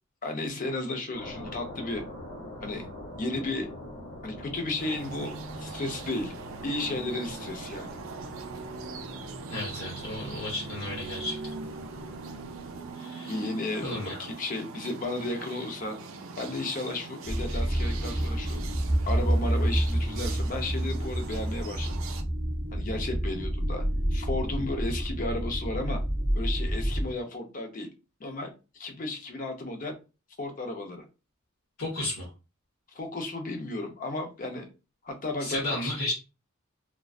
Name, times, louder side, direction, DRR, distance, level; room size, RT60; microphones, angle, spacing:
voice 1, 0.2-2.0 2.6-2.9 3.2-3.7 4.2-6.3 6.6-7.9 13.3-16.0 16.4-18.6 19.1-22.0 22.7-23.8 24.1-26.0 26.4-27.9 28.2-30.0 30.4-31.0 32.9-34.7 35.0-36.1, left 2 dB, 40° left, 4 dB, 0.5 m, -34 dB
sound 1, 1.1-12.9, left 1 dB, 55° left, 1.1 m, -44 dB
sound 2, 4.8-22.2, right 4 dB, 65° right, 0.4 m, -41 dB
voice 2, 9.5-11.4 12.9-13.4 13.8-14.2 31.8-32.3 35.4-36.1, left 1 dB, 80° left, -3 dB, 0.8 m, -33 dB
sound 3, 17.3-27.1, right 1 dB, 5° right, 0.6 m, -28 dB
2.5 x 2.1 x 2.3 m, 0.30 s
head